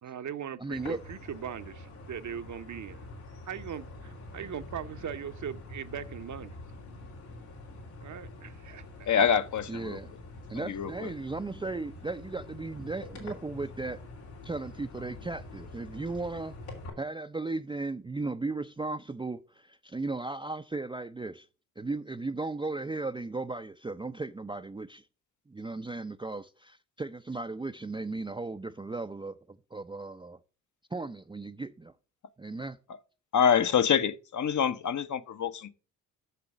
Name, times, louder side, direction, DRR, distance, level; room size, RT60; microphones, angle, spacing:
voice 1, 0.0-3.0 3.5-6.6 8.0-9.1, right 8 dB, 45° right, 0.9 m, -40 dB
voice 2, 0.6-1.0 9.7-10.2 10.5-14.0 14.4-16.6 17.0-21.5 21.8-25.0 25.5-30.4 30.9-31.9 32.4-32.8, right 3 dB, 10° right, 0.5 m, -36 dB
sound 1, 0.7-16.9, left 2 dB, 90° left, 3.6 m, -46 dB
voice 3, 9.1-10.0 10.5-11.1 33.3-35.7, left 7 dB, 45° left, 0.9 m, -26 dB
7.0 x 6.8 x 6.1 m
hypercardioid pair, 50°, 40 cm